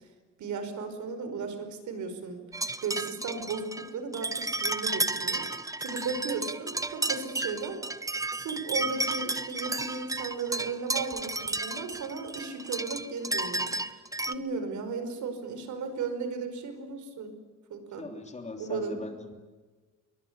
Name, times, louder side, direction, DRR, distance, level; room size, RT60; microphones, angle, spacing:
voice 1, 0.4-2.4 2.8-5.5 5.8-7.8 8.4-17.4 17.7-18.1 18.6-19.0, right 4 dB, 60° right, 8 dB, 5.3 m, -35 dB
sound 1, 2.5-14.3, right 2 dB, 10° right, 0.9 m, -32 dB
voice 2, 18.0-19.3, left 3 dB, 20° left, 4 dB, 3.3 m, -40 dB
27.0 x 23.5 x 8.9 m, 1.4 s
cardioid pair, 160°, 33 cm